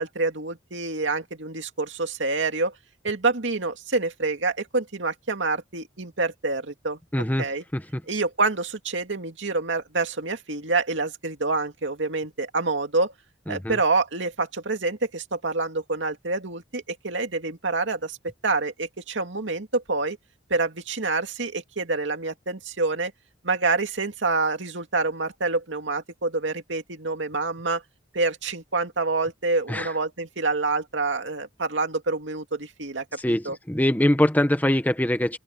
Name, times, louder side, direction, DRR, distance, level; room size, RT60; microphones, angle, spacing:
voice 1, 0.0-2.7 3.0-7.0 7.4-7.6 8.1-13.1 13.5-18.2 18.4-20.2 20.5-23.1 23.4-27.8 28.1-33.6, right 3 dB, 80° right, 2.4 m, -27 dB
voice 2, 7.1-7.5 7.7-8.0 13.5-13.8 29.7-29.9 33.2-35.4, left 1 dB, 10° left, 1.2 m, -23 dB
open air
head